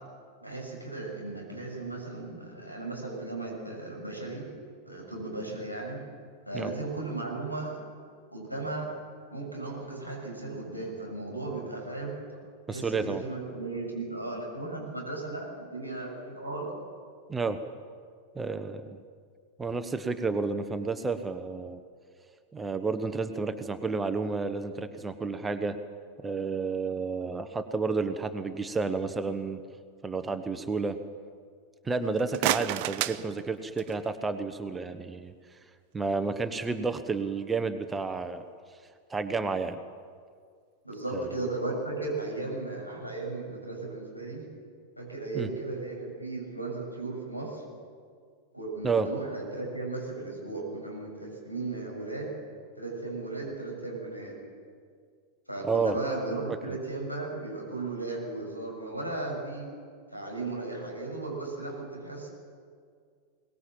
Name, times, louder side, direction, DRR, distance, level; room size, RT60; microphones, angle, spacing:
voice 1, 0.4-4.4 4.9-6.0 6.5-7.8 8.3-8.9 9.3-12.1 12.7-16.7 40.8-44.4 45.0-47.6 48.5-52.3 52.8-54.4 55.5-59.7 60.1-62.3, right 2 dB, 90° left, 0 dB, 6.9 m, -36 dB
voice 2, 12.7-13.2 17.3-17.6 18.3-19.0 19.6-21.8 22.5-25.8 26.2-29.6 30.0-31.0 31.8-35.3 35.9-38.4 39.1-39.8 41.1-41.3 45.3-45.5 48.8-49.1 55.6-56.0, right 4 dB, 15° right, 9 dB, 1.1 m, -31 dB
sound 1, 32.0-34.1, right 15 dB, 45° right, 0.7 m, -31 dB
23.0 x 19.5 x 7.5 m, 2.1 s
figure-of-eight pair, 90°, 0 cm